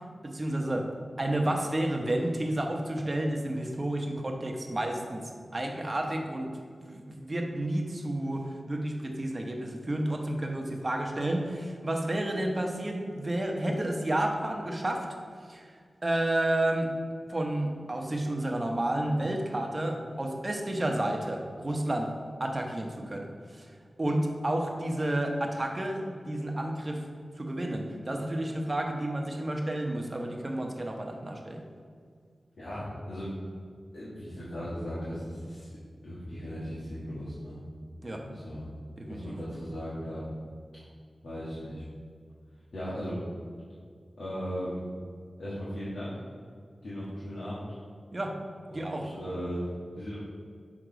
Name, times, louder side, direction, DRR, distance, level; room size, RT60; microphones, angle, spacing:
voice 1, 0.2-0.9 1.2-6.5 6.8-15.2 15.5-15.7 16.0-16.9 17.3-22.1 22.4-23.3 23.6-23.7 24.0-27.0 27.4-31.6 38.0-38.3 39.0-39.4 48.1-48.4 48.7-49.1, right 1 dB, 35° right, 2 dB, 1.0 m, -31 dB
voice 2, 32.6-33.4 33.9-35.7 36.0-37.6 38.2-38.6 39.1-40.3 41.2-41.8 42.7-43.2 44.2-44.9 45.4-46.1 46.8-47.7 48.7-49.7 49.9-50.2, equal, 90° left, -10 dB, 1.5 m, -37 dB
6.3 x 3.9 x 5.1 m, 2.1 s
wide cardioid pair, 55°, 0 cm